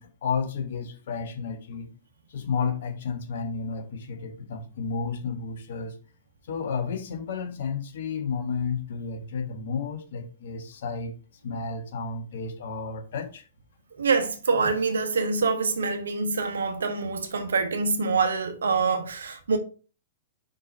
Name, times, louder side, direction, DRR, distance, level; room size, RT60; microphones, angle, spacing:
voice 1, 0.0-1.9 2.3-5.9 6.5-11.1 11.4-13.5, left 5 dB, 65° left, 1.4 m, -32 dB
voice 2, 14.0-19.6, right 4 dB, 75° right, 1.2 m, -25 dB
5.3 x 4.3 x 4.5 m
hypercardioid pair, 110°, 0 cm